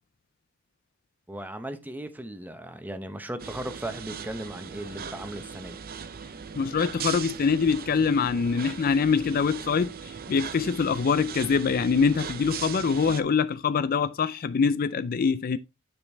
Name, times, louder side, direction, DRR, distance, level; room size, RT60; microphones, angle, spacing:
voice 1, 1.3-5.8, right 1 dB, 10° right, 0.8 m, -37 dB
sound 1, 3.4-13.2, right 7 dB, 45° right, 0.7 m, -39 dB
voice 2, 6.5-15.6, left 5 dB, 45° left, 0.4 m, -24 dB
9.5 x 5.2 x 3.3 m
head